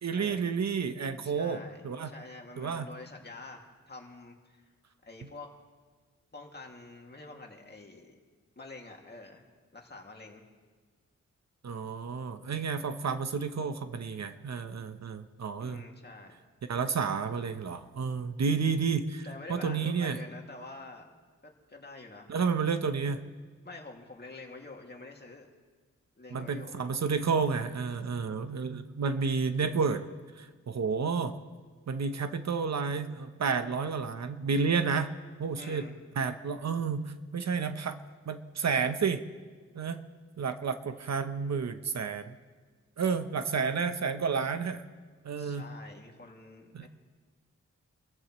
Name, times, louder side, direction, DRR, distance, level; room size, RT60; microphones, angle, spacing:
voice 1, 0.0-2.1 2.6-2.9 11.6-15.8 16.7-20.2 22.3-23.2 26.3-30.0 30.4-31.4 31.9-35.1 35.4-35.9 36.2-39.2 39.7-40.0 40.4-42.4 43.0-44.8 45.2-45.6 46.7-46.9, right 5 dB, 65° right, 9 dB, 0.9 m, -31 dB
voice 2, 1.2-4.6 5.0-5.5 6.3-8.2 8.6-9.5 9.7-10.5 15.6-16.4 19.2-21.1 21.4-22.4 23.6-25.5 26.2-26.8 27.1-27.3 35.6-35.9 45.3-46.9, left 2 dB, 35° left, 1 dB, 2.3 m, -47 dB
27.0 x 14.5 x 3.1 m, 1.5 s
cardioid pair, 75°, 30 cm